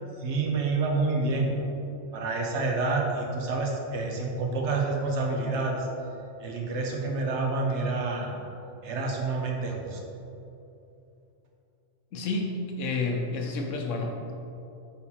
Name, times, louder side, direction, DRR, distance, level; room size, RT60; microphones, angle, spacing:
voice 1, 0.2-1.6 2.1-5.9 6.4-8.3 8.8-10.0, right 3 dB, 70° right, 1 dB, 1.1 m, -28 dB
voice 2, 12.1-14.3, left 3 dB, 85° left, 1 dB, 1.1 m, -30 dB
5.5 x 4.1 x 4.2 m, 2.8 s
omnidirectional pair, 1.3 m